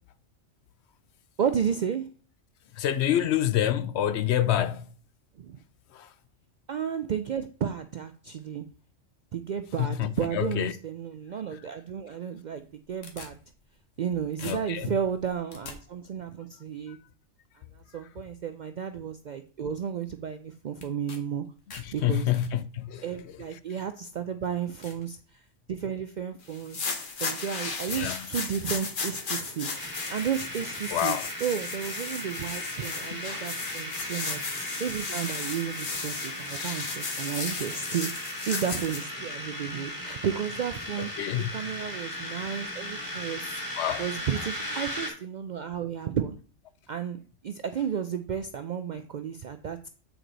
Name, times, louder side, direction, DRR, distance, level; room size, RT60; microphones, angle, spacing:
voice 1, 1.4-2.0 5.4-5.6 6.7-8.6 9.3-13.4 14.0-17.0 17.9-21.4 21.9-22.3 23.0-25.2 25.7-26.8 27.2-29.7 30.1-38.1 38.5-41.1 41.5-43.6 44.0-46.4 46.9-49.9, right 8 dB, 65° right, 0.4 m, -32 dB
voice 2, 2.7-4.9 5.9-6.1 9.8-10.7 14.4-15.0 16.9-17.0 21.8-23.4 27.9-28.3 30.9-31.3 33.1-33.3 41.0-41.5 43.7-44.1, left 11 dB, 70° left, 0.8 m, -28 dB
sound 1, 12.6-14.1 14.4-15.8 20.8-21.2 21.5-22.5 23.4-23.5 24.1-24.2 24.8-25.1 25.6-25.9 27.1-27.2 27.6-27.7 28.0-28.2 28.6-28.7 29.8-30.3 30.6-31.1, left 4 dB, 85° left, 1.6 m, -46 dB
sound 2, 26.5-39.0, left 4 dB, 45° left, 1.1 m, -35 dB
sound 3, 29.7-45.1, left 1 dB, 15° left, 2.5 m, -37 dB
7.8 x 4.6 x 3.9 m
omnidirectional pair, 1.2 m